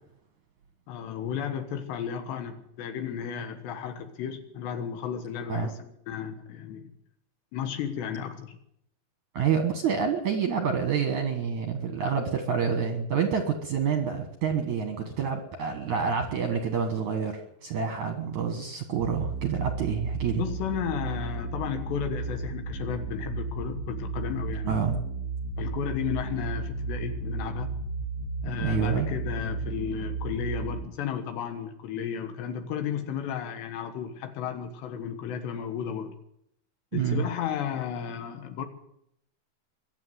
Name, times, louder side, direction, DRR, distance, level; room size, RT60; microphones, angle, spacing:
voice 1, 0.9-6.9 7.5-8.6 20.4-24.8 25.6-27.8 28.4-36.1 36.9-38.7, left 8 dB, 75° left, 7 dB, 3.5 m, -33 dB
voice 2, 9.3-20.4 24.7-25.0 28.6-29.1 36.9-37.2, right 7 dB, 65° right, 6 dB, 2.0 m, -28 dB
sound 1, 19.0-30.8, right 4 dB, 40° left, 3.3 m, -34 dB
23.0 x 7.7 x 8.1 m, 0.73 s
omnidirectional pair, 5.2 m